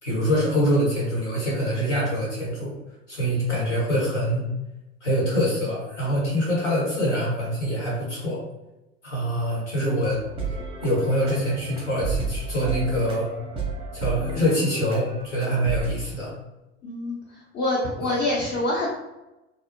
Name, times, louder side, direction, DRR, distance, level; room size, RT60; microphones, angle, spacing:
voice 1, 0.0-2.7 3.1-4.4 5.0-8.4 9.0-10.2 10.8-13.3 13.9-16.3 18.0-18.1, equal, 85° left, -5 dB, 1.1 m, -24 dB
sound 1, 10.1-16.0, right 3 dB, 15° right, 0.6 m, -32 dB
voice 2, 16.8-18.9, left 1 dB, 30° left, -4 dB, 0.5 m, -26 dB
2.6 x 2.0 x 2.6 m, 0.97 s
figure-of-eight pair, 70°, 35 cm